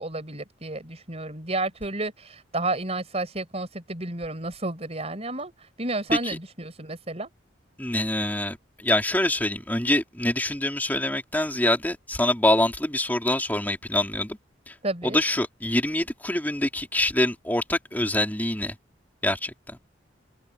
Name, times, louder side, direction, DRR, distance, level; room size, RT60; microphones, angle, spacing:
voice 1, 0.0-7.3 14.8-15.2, right 2 dB, 35° right, 4.8 m, -31 dB
voice 2, 7.8-14.4 14.7-14.8 15.0-18.7 19.2-19.8, left 1 dB, 10° left, 3.1 m, -25 dB
head